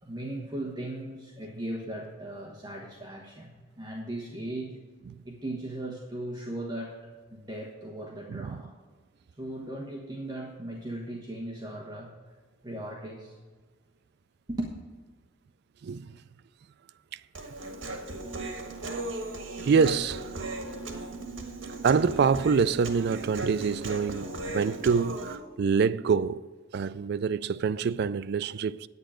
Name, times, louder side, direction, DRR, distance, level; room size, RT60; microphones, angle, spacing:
voice 1, 0.0-4.8 5.2-8.7 9.4-12.1 12.6-13.4 14.5-14.7, right 1 dB, 20° right, 1.2 m, -37 dB
voice 2, 8.3-8.6 15.8-16.1 19.6-20.3 21.8-26.4 26.7-28.9, right 5 dB, 60° right, 0.3 m, -26 dB
Human voice, 17.3-25.4, right 2 dB, 80° right, 1.5 m, -37 dB
9.6 x 9.0 x 5.0 m
head